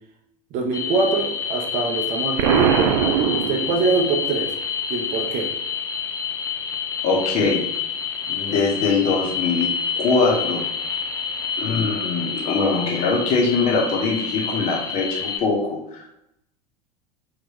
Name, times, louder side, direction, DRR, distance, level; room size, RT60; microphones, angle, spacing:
voice 1, 0.5-2.9 3.3-4.5 4.9-5.5, right 3 dB, 40° right, 2 dB, 0.8 m, -24 dB
sound 1, 0.7-15.4, left 6 dB, 20° left, 0.5 m, -28 dB
Explosion, 2.4-4.2, right 8 dB, 55° right, 0.4 m, -21 dB
voice 2, 7.0-7.6 8.3-9.7 10.0-10.6 11.6-16.1, left 4 dB, 40° left, -2 dB, 1.4 m, -22 dB
4.3 x 3.4 x 3.2 m, 0.81 s
figure-of-eight pair, 80°, 20 cm